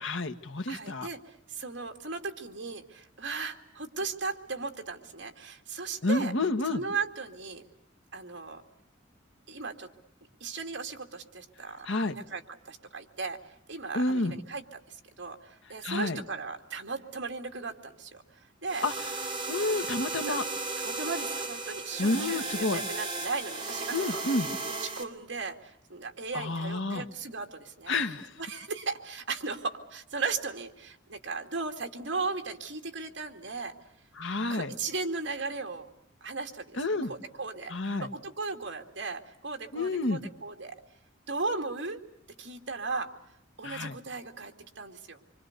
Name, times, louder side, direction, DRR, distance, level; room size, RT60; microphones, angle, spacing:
voice 1, 0.0-1.1 6.0-6.8 11.8-12.1 13.9-14.3 15.8-16.2 18.8-19.1 19.5-20.4 22.0-22.8 23.9-24.5 26.3-27.0 27.9-28.3 34.2-34.7 36.8-37.1 37.7-38.1 39.7-40.2 43.6-43.9, left 2 dB, 70° left, 8 dB, 1.4 m, -29 dB
voice 2, 0.7-6.3 6.7-7.6 8.1-8.6 9.5-9.9 10.4-11.9 12.1-13.4 13.7-18.8 20.2-20.4 20.8-24.2 25.0-27.9 28.4-33.7 34.5-35.9 36.2-37.7 38.0-40.8 41.3-42.0 42.4-43.1 43.6-45.2, right 4 dB, 65° right, 5 dB, 2.5 m, -36 dB
sound 1, 18.7-25.0, right 3 dB, 25° right, 2.5 m, -35 dB
26.0 x 25.0 x 6.7 m, 0.76 s
head